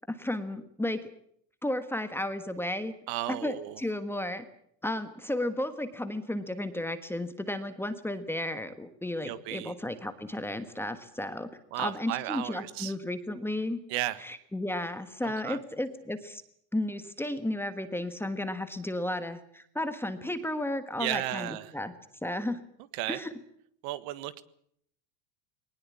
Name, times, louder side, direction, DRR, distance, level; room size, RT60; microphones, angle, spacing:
voice 1, 0.1-1.0 1.6-2.9 3.3-4.4 4.8-11.5 11.8-13.8 14.2-16.4 16.7-21.9 22.2-22.6 23.1-23.3, left 1 dB, 5° left, 9 dB, 1.4 m, -33 dB
voice 2, 3.1-3.8 9.2-9.7 11.7-12.9 13.9-14.2 15.2-15.6 21.0-21.7 22.9-23.2 23.8-24.4, right 15 dB, 60° right, 14 dB, 1.6 m, -34 dB
20.5 x 19.5 x 8.5 m, 0.68 s
supercardioid pair, 140°, 49 cm